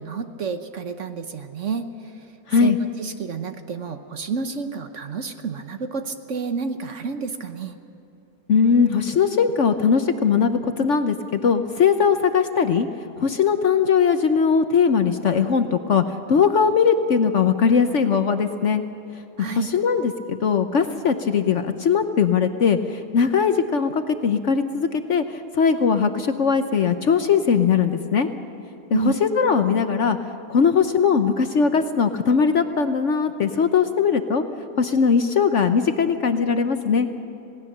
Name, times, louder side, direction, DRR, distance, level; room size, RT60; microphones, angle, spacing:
voice 1, 0.0-1.9 2.6-2.7 3.0-7.7 19.4-19.7 28.9-29.1, right 5 dB, 55° right, 8 dB, 1.1 m, -30 dB
voice 2, 8.5-12.9 13.2-16.0 16.3-18.8 19.6-25.2 25.5-28.3 28.9-30.2 30.5-34.4 34.8-37.1, left 6 dB, 55° left, 8 dB, 1.0 m, -20 dB
27.0 x 18.0 x 6.6 m, 2.9 s
omnidirectional pair, 1.8 m